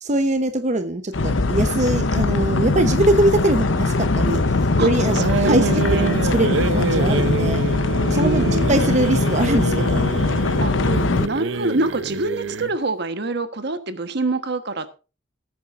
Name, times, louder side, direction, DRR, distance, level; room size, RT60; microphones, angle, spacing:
voice 1, 0.0-4.4 4.8-7.6 8.1-10.0 10.9-11.2, right 1 dB, 40° right, 7 dB, 1.0 m, -22 dB
sound 1, 1.1-11.3, left 3 dB, 85° left, 0.9 m, -21 dB
voice 2, 5.1-6.1 8.1-8.7 10.6-10.7 11.2-14.9, right 2 dB, 60° right, 10 dB, 1.4 m, -25 dB
sound 2, 5.1-12.8, right 3 dB, 80° right, 0.7 m, -26 dB
19.0 x 9.3 x 2.6 m, 0.32 s
head